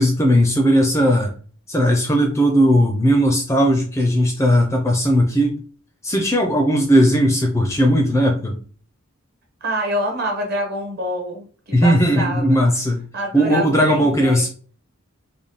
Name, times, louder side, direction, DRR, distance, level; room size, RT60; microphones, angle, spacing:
voice 1, 0.0-1.3 1.7-5.6 6.0-8.6 11.7-13.0 13.3-14.5, equal, 15° left, 2 dB, 0.4 m, -17 dB
voice 2, 9.6-12.6 13.1-14.5, right 1 dB, 45° right, 1 dB, 1.2 m, -26 dB
3.4 x 2.1 x 3.9 m, 0.41 s
head